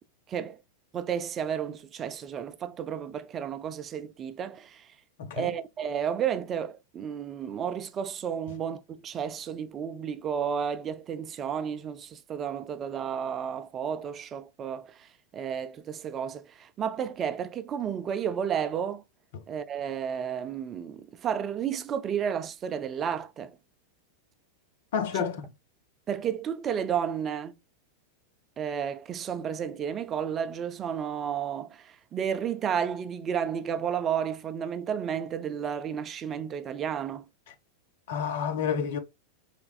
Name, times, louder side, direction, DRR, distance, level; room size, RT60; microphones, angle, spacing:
voice 1, 0.9-4.9 5.3-19.0 19.5-23.6 25.1-25.2 26.1-27.5 28.6-37.3, right 8 dB, 25° right, 0.4 m, -32 dB
voice 2, 24.9-25.4 38.1-39.0, left 7 dB, 55° left, 0.7 m, -29 dB
4.3 x 3.4 x 2.3 m
figure-of-eight pair, 90°, 0 cm